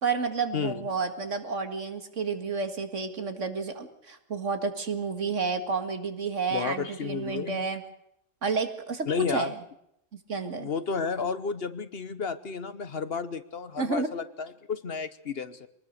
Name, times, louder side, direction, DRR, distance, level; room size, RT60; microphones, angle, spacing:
voice 1, 0.0-7.8 8.4-9.6 10.3-10.7 13.8-14.1, right 4 dB, 70° right, 8 dB, 2.3 m, -30 dB
voice 2, 6.5-7.7 9.1-9.5 10.6-15.7, left 5 dB, 55° left, 13 dB, 1.2 m, -32 dB
24.0 x 19.5 x 6.6 m, 0.76 s
omnidirectional pair, 1.3 m